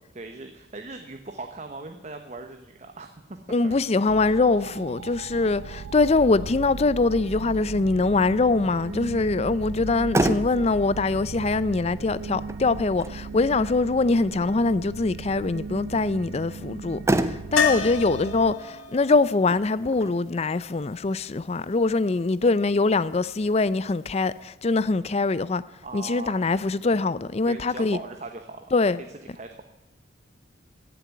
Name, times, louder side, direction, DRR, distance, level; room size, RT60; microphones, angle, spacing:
voice 1, 0.1-3.8 8.8-8.9 25.8-26.5 27.5-28.7 29.1-29.6, right 3 dB, 35° right, 0.9 m, -40 dB
voice 2, 3.5-25.6 25.9-28.0 28.7-29.0, left 3 dB, 30° left, 0.4 m, -23 dB
sound 1, 4.1-18.5, right 5 dB, 80° right, 0.4 m, -37 dB
Motor vehicle (road), 9.7-22.7, right 1 dB, 15° right, 0.6 m, -33 dB
sound 2, 17.6-21.4 24.1-24.2 24.4-24.5, left 6 dB, 90° left, 1.5 m, -31 dB
16.0 x 7.0 x 9.5 m
head